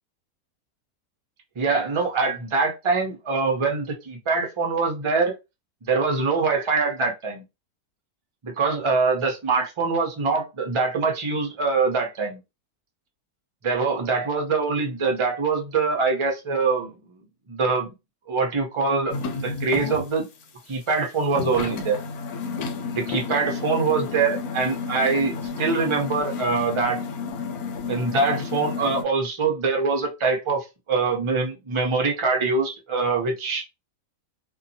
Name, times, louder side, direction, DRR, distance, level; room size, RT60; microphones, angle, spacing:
voice 1, 1.6-5.3 5.8-7.4 8.4-12.4 13.6-16.9 17.5-17.9 18.3-20.3 20.7-22.0 22.9-27.0 27.9-33.6, right 4 dB, 55° right, 2 dB, 0.3 m, -24 dB
sound 1, 19.1-20.1 20.4-20.5 20.9-21.0 21.3-29.0, left 5 dB, 85° left, 1.1 m, -31 dB
2.7 x 2.3 x 2.6 m, 0.24 s
omnidirectional pair, 1.6 m